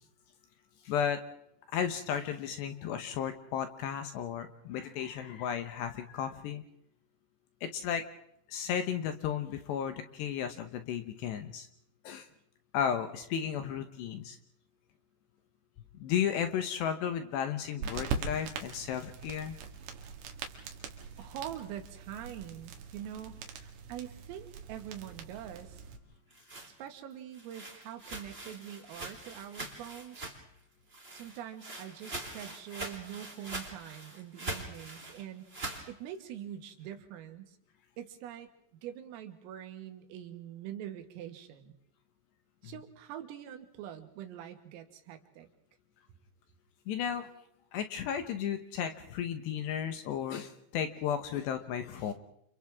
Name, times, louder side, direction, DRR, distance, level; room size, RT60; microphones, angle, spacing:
voice 1, 0.8-1.2 1.7-6.6 7.6-8.1 8.5-11.7 12.0-12.3 12.7-14.4 15.9-19.6 32.7-32.8 42.6-42.7 46.9-47.3 47.7-52.1, left 8 dB, 70° left, 8 dB, 2.8 m, -34 dB
sound 1, 17.8-26.0, right 5 dB, 65° right, 3.8 m, -42 dB
voice 2, 21.2-25.8 26.6-30.4 31.1-35.5 35.9-37.6 38.0-38.5 38.8-41.8 42.6-45.5, right 10 dB, 80° right, 6 dB, 4.4 m, -44 dB
sound 2, 26.1-30.6 30.9-35.9, right 2 dB, 15° right, 2.9 m, -43 dB
29.5 x 29.0 x 3.6 m, 0.71 s
omnidirectional pair, 5.9 m